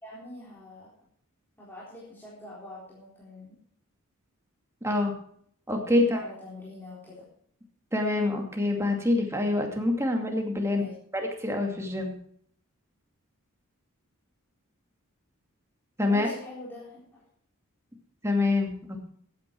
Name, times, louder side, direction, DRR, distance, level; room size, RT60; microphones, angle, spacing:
voice 1, 0.0-0.9 1.6-3.6 5.8-7.3 10.7-10.9 16.0-17.2, left 1 dB, 10° left, -8 dB, 4.1 m, -44 dB
voice 2, 4.8-5.1 5.7-6.2 7.9-10.8 11.1-12.1 16.0-16.3 18.2-19.1, left 2 dB, 15° right, 2 dB, 2.5 m, -26 dB
15.0 x 9.5 x 4.7 m, 0.63 s
head